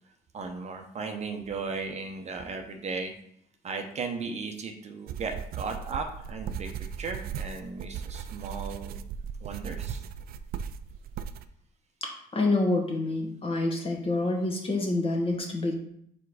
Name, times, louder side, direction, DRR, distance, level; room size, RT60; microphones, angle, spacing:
voice 1, 0.3-3.1 3.6-6.7 7.0-9.0 9.4-10.0, right 4 dB, 40° right, 5 dB, 0.8 m, -36 dB
sound 1, 5.1-11.4, right 8 dB, 60° right, 0.4 m, -37 dB
voice 2, 12.0-15.8, left 2 dB, 35° left, 1 dB, 1.4 m, -27 dB
4.7 x 4.5 x 4.8 m, 0.70 s
cardioid pair, 110°, 17 cm